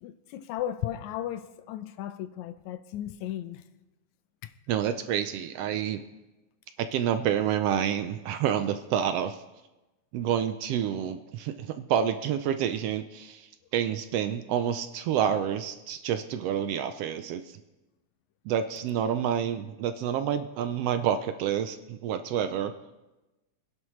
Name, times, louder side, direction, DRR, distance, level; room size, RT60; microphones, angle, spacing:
voice 1, 0.0-3.6 4.4-4.5, left 12 dB, 85° left, 2.0 m, -35 dB
voice 2, 4.7-6.0 6.8-9.4 10.1-17.6 18.5-22.7, right 9 dB, 80° right, 1.4 m, -28 dB
24.5 x 11.0 x 3.2 m
omnidirectional pair, 3.3 m